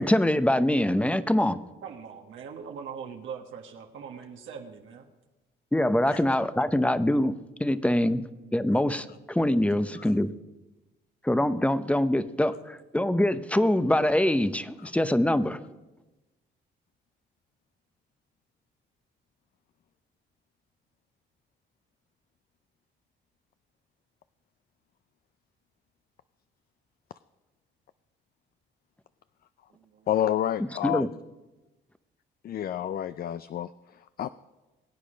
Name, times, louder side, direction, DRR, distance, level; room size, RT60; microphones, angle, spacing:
voice 1, 0.0-1.6 5.7-8.2 8.5-10.3 11.2-15.6 30.8-31.1, left 1 dB, 5° left, 13 dB, 0.7 m, -24 dB
voice 2, 1.8-5.1 8.3-8.6 29.7-30.1, right 6 dB, 80° right, 3 dB, 1.5 m, -42 dB
voice 3, 30.1-31.1 32.4-33.7 34.2-34.3, left 11 dB, 50° left, 14 dB, 0.4 m, -28 dB
22.0 x 8.5 x 5.1 m, 1.1 s
cardioid pair, 90°, 20 cm